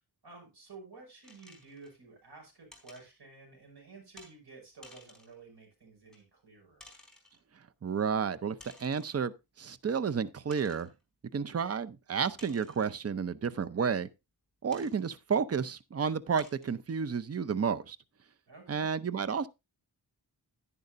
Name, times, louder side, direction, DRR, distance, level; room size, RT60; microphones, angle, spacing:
voice 1, 0.2-6.9 18.5-18.9, right 3 dB, 70° right, 6.2 m, -52 dB
sound 1, 1.2-2.0 2.7-3.1 4.2-4.3 4.8-5.4 6.1-6.2 6.8-7.4 8.6-9.2 9.7-9.8 10.5-10.9 12.4-13.0 14.7-15.0 15.7-15.8 16.4-16.7, left 1 dB, ahead, 4.1 m, -55 dB
voice 2, 7.8-10.9 11.3-14.1 14.6-18.0 18.7-19.5, right 6 dB, 35° right, 0.7 m, -31 dB
11.0 x 10.5 x 2.6 m
wide cardioid pair, 90°, 40 cm